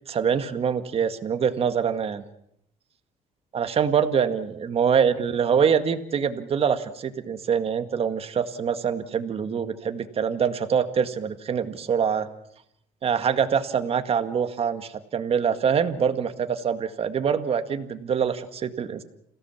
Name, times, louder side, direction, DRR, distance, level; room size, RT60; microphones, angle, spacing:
voice 1, 0.1-2.2 3.5-12.3 13.0-19.0, right 7 dB, 45° right, 8 dB, 2.0 m, -24 dB
28.0 x 17.0 x 7.2 m, 0.75 s
cardioid pair, 105°, 14 cm